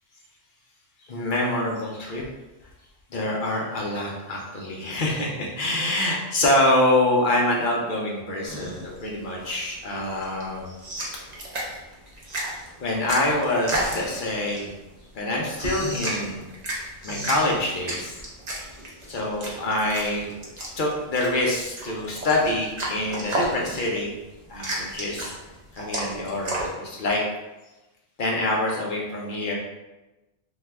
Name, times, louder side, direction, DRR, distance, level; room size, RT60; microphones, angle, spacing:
voice 1, 1.1-2.2 3.1-10.7 12.8-14.7 15.1-16.4 17.0-18.2 19.1-20.3 20.8-24.1 24.5-25.3 25.8-27.2 28.2-29.6, left 1 dB, 55° left, -2 dB, 0.6 m, -25 dB
sound 1, 8.4-26.7, right 1 dB, 45° right, 0.6 m, -33 dB
2.6 x 2.2 x 3.2 m, 1.0 s
omnidirectional pair, 1.3 m